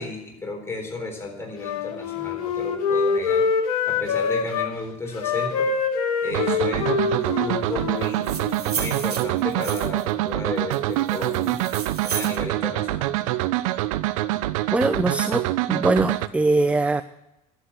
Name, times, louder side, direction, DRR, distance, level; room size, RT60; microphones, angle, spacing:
voice 1, 0.0-3.4 3.9-5.7 6.2-8.3 8.7-11.6 12.0-13.1, left 2 dB, 15° left, 0 dB, 3.9 m, -33 dB
Wind instrument woodwind instrument, 1.6-4.7 5.1-8.6, left 5 dB, 65° left, 1.5 m, -25 dB
sound 1, 6.3-16.3, right 16 dB, 60° right, 0.5 m, -25 dB
sound 2, 8.0-10.1 10.7-12.4, right 6 dB, 85° right, 0.9 m, -33 dB
voice 2, 14.7-17.0, right 2 dB, 5° right, 13 dB, 0.4 m, -22 dB
11.5 x 8.0 x 8.1 m, 0.91 s
figure-of-eight pair, 65°, 19 cm